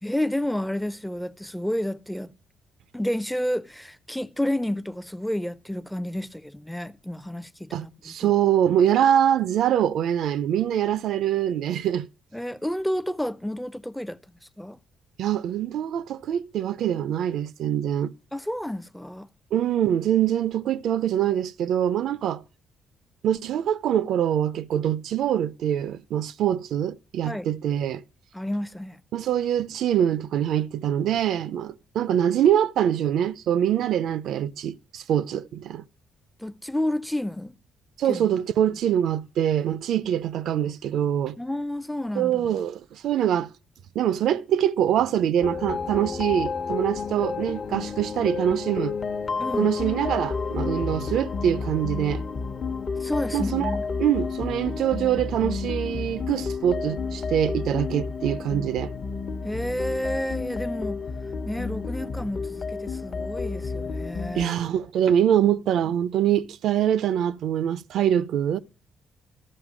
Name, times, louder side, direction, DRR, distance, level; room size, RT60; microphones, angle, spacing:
voice 1, 0.0-2.4 2.9-8.3 12.3-14.2 14.6-14.8 18.3-19.3 27.2-27.5 28.3-29.0 36.4-37.6 38.1-38.3 41.4-42.5 49.4-49.7 53.0-53.9 59.4-61.0 61.5-64.6, left 1 dB, 5° left, 0.5 m, -30 dB
voice 2, 7.7-12.1 15.2-18.1 19.5-22.4 23.2-28.0 29.1-35.8 38.0-41.4 42.2-43.5 44.0-48.9 49.6-52.2 53.3-53.7 54.0-58.9 64.3-68.6, right 10 dB, 75° right, 0.5 m, -24 dB
sound 1, 45.4-64.5, left 4 dB, 45° left, 0.9 m, -31 dB
13.0 x 5.7 x 6.1 m
cardioid pair, 90°, 0 cm